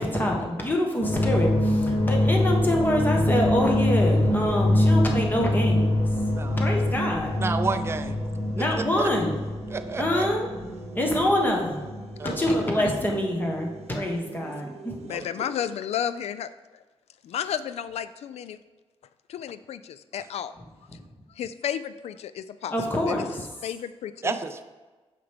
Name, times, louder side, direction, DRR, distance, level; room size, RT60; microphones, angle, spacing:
voice 1, 0.0-6.1 6.6-7.3 8.5-9.4 10.0-10.5 10.9-11.8 12.2-15.0 20.9-21.0 22.7-23.3, left 1 dB, 20° left, 0 dB, 1.2 m, -25 dB
sound 1, 1.0-13.1 13.4-13.8, left 1 dB, 50° left, 1.2 m, -25 dB
sound 2, 1.3-15.2, right 3 dB, 80° right, 0.8 m, -44 dB
voice 2, 6.3-6.9 7.4-8.1 8.8-9.1 9.7-10.3 12.2-12.7 14.4-14.7 15.1-15.2 24.2-24.6, right 4 dB, 25° right, 8 dB, 0.4 m, -31 dB
voice 3, 12.2-12.9 15.0-16.5 17.2-18.6 19.3-20.5 21.3-22.8 23.1-23.3 23.6-24.3, left 9 dB, 85° left, 13 dB, 0.4 m, -32 dB
8.6 x 5.8 x 3.5 m, 1.3 s
wide cardioid pair, 145°, 11 cm